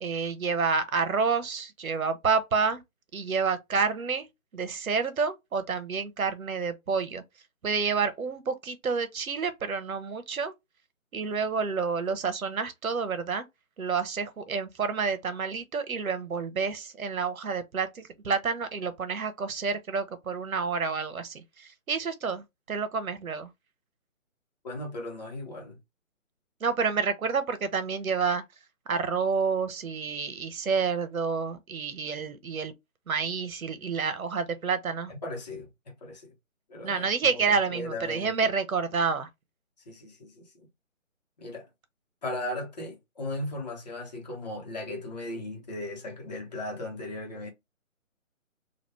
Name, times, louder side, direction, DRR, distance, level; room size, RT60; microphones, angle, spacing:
voice 1, 0.0-2.8 3.1-4.3 4.5-7.2 7.6-10.5 11.1-13.5 13.8-23.5 26.6-28.4 28.9-32.7 33.1-35.1 36.8-39.3, right 5 dB, 80° right, 0.9 m, -29 dB
voice 2, 24.6-25.8 35.1-36.3 36.7-38.3 39.9-40.7 41.4-41.7 42.2-47.5, left 1 dB, 30° left, 0.9 m, -37 dB
3.2 x 2.4 x 3.1 m
hypercardioid pair, 165°, 41 cm